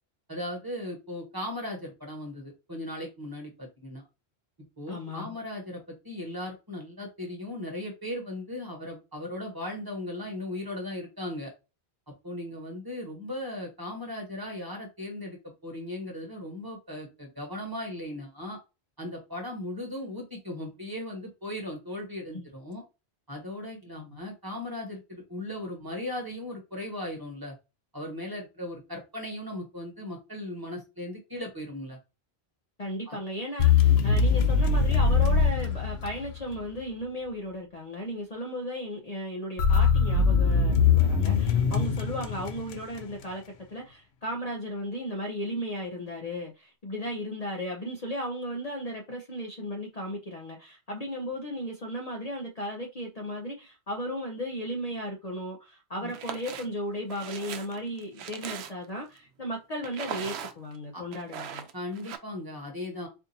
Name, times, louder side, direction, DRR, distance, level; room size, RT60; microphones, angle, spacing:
voice 1, 0.3-4.0 4.8-11.5 12.2-18.6 19.0-22.8 23.3-27.5 27.9-32.0 33.1-33.2 56.0-56.1 60.9-61.0 61.7-63.1, left 1 dB, 20° right, 1.2 m, -37 dB
voice 2, 4.9-5.3 22.3-22.4 24.0-24.2 32.8-61.7, equal, 45° left, 0.7 m, -35 dB
sound 1, 33.6-36.6 39.6-43.0, left 6 dB, 75° left, 0.8 m, -22 dB
sound 2, 56.1-56.7 57.1-59.0 59.8-60.8 61.1-62.2, right 8 dB, 80° right, 0.8 m, -39 dB
4.4 x 2.6 x 2.6 m
omnidirectional pair, 1.1 m